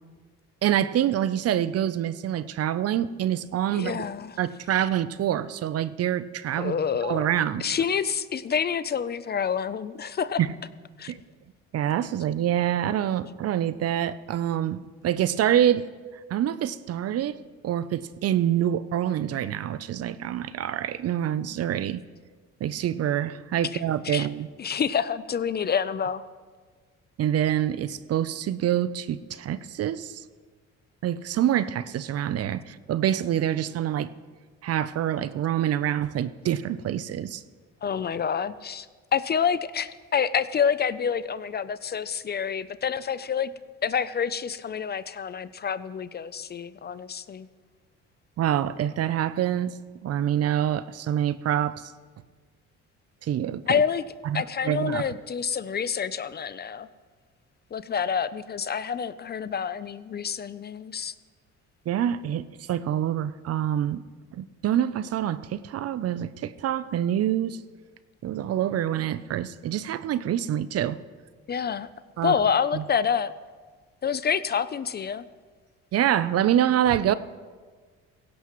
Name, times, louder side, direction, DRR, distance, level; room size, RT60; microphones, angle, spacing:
voice 1, 0.6-4.1 4.4-6.8 7.0-7.7 10.4-10.5 11.1-11.2 11.7-15.8 16.3-17.4 17.6-22.0 22.6-24.5 27.2-30.2 31.0-34.1 34.6-37.4 48.4-49.8 50.0-51.9 53.2-53.8 54.2-55.0 61.9-64.0 64.3-67.6 68.2-71.0 72.2-72.4 72.7-72.8 75.9-77.1, right 11 dB, 50° right, 15 dB, 0.6 m, -26 dB
voice 2, 3.7-4.4 6.6-7.2 7.6-10.4 11.0-11.1 23.7-24.3 24.6-26.3 37.8-38.9 39.1-43.5 43.8-47.5 53.7-54.0 54.3-56.9 57.7-61.1 71.5-71.9 72.2-73.3 74.0-75.2, left 7 dB, 35° left, 15 dB, 0.5 m, -27 dB
16.5 x 16.5 x 3.1 m, 1.5 s
cardioid pair, 90°, 31 cm